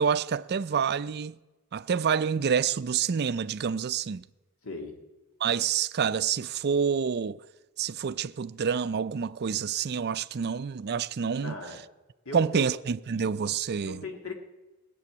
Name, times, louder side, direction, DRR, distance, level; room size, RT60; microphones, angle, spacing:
voice 1, 0.0-1.3 1.7-4.2 5.4-7.4 7.8-11.6 12.3-14.0, right 6 dB, 45° right, 0.4 m, -27 dB
voice 2, 4.6-5.0 11.4-11.8 12.3-12.7 13.9-14.3, left 2 dB, 65° left, 2.2 m, -38 dB
19.0 x 7.0 x 9.5 m
head